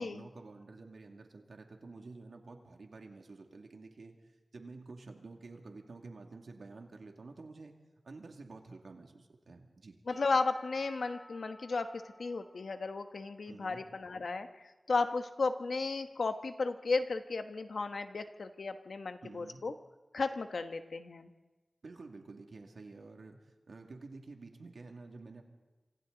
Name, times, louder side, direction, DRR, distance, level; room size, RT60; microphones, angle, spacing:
voice 1, 0.0-4.1 4.5-7.7 8.0-10.0 13.5-13.9 19.2-19.6 21.8-25.4, right 3 dB, 85° right, 3 dB, 2.4 m, -50 dB
voice 2, 10.1-14.5 14.9-19.7 20.1-21.3, left 3 dB, 85° left, 7 dB, 1.2 m, -34 dB
Percussion / Church bell, 10.1-14.4, left 1 dB, 40° left, 5.3 m, -56 dB
27.0 x 26.0 x 4.0 m, 1.2 s
cardioid pair, 50°, 0 cm